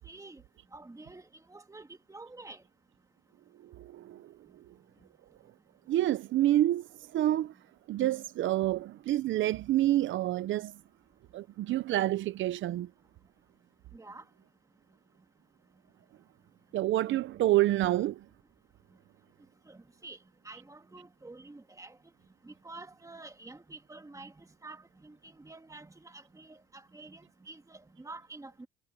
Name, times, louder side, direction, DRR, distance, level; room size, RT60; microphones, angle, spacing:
voice 1, 0.0-0.4 0.7-2.6 13.9-14.2 19.7-20.2 20.4-22.0 22.4-28.7, right 2 dB, 15° right, 2.2 m, -49 dB
voice 2, 3.6-4.7 5.9-7.5 7.9-10.7 11.3-12.9 16.7-18.1, right 14 dB, 75° right, 0.7 m, -28 dB
cardioid pair, 90°, 20 cm